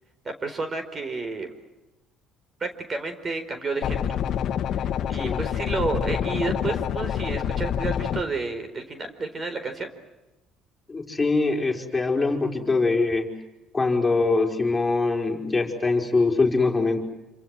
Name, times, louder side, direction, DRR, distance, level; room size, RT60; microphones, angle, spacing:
voice 1, 0.2-1.5 2.6-4.2 4.7-9.9, right 3 dB, 30° right, 9 dB, 4.5 m, -31 dB
sound 1, 3.8-8.2, left 9 dB, 55° left, 1.8 m, -27 dB
voice 2, 10.9-13.3 13.7-17.0, left 3 dB, 15° left, 2 dB, 5.1 m, -23 dB
28.0 x 26.5 x 7.8 m, 0.99 s
cardioid pair, 120°, 0 cm